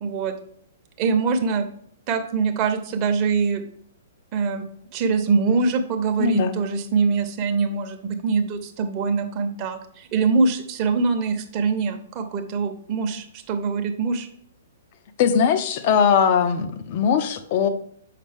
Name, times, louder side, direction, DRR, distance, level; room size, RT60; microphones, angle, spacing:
voice 1, 0.0-0.3 1.0-1.7 2.1-3.6 4.3-4.6 4.9-14.3, right 4 dB, 30° right, 5 dB, 0.8 m, -23 dB
voice 2, 6.2-6.6 15.2-17.7, left 7 dB, 40° left, 9 dB, 0.7 m, -20 dB
6.7 x 5.1 x 3.4 m, 0.65 s
figure-of-eight pair, 115°, 0 cm